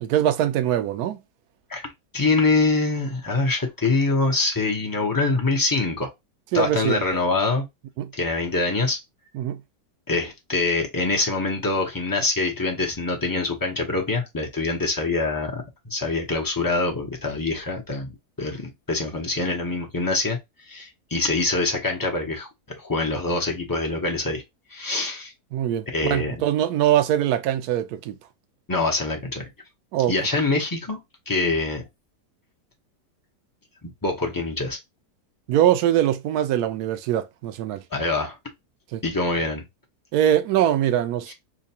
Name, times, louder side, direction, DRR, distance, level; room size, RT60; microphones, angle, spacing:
voice 1, 0.0-1.2 6.5-7.0 8.0-8.1 9.3-9.6 25.5-28.2 29.9-30.1 35.5-37.8 38.9-39.0 40.1-41.3, right 11 dB, 75° right, 1.1 m, -22 dB
voice 2, 2.1-6.1 6.5-7.6 8.1-9.0 10.1-18.1 18.4-18.6 18.9-20.4 20.7-22.5 22.8-24.4 24.7-25.3 25.9-26.4 28.7-29.5 30.1-31.0 31.3-31.8 34.0-34.8 37.9-38.4 39.0-39.6, left 3 dB, 25° left, 0.4 m, -24 dB
5.0 x 2.2 x 2.7 m
omnidirectional pair, 1.8 m